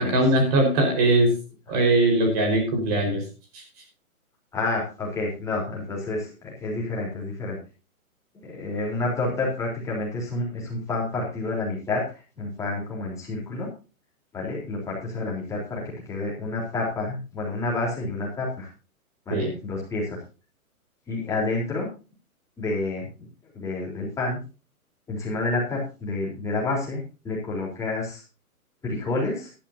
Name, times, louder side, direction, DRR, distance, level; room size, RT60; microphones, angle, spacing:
voice 1, 0.0-1.3 1.7-3.2 3.5-3.6 19.3-19.5, right 1 dB, 25° right, 3 dB, 4.7 m, -21 dB
voice 2, 4.5-7.6 8.4-13.7 14.3-18.7 19.3-20.2 21.1-21.9 22.6-23.1 23.5-24.4 25.1-28.2 28.8-29.5, left 2 dB, 5° left, -3 dB, 3.7 m, -29 dB
15.0 x 12.0 x 2.7 m, 0.32 s
hypercardioid pair, 165°, 45 cm